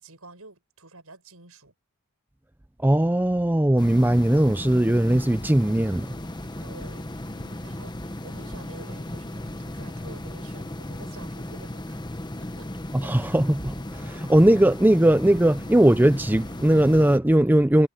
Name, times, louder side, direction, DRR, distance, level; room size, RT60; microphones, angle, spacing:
voice 1, 0.0-1.7 6.6-12.0 12.6-12.7 13.0-13.2, right 3 dB, 75° right, 7.6 m, -48 dB
voice 2, 2.8-6.1 12.9-17.9, right 1 dB, 10° right, 0.4 m, -19 dB
sound 1, 3.8-17.2, left 1 dB, 20° left, 1.2 m, -36 dB
head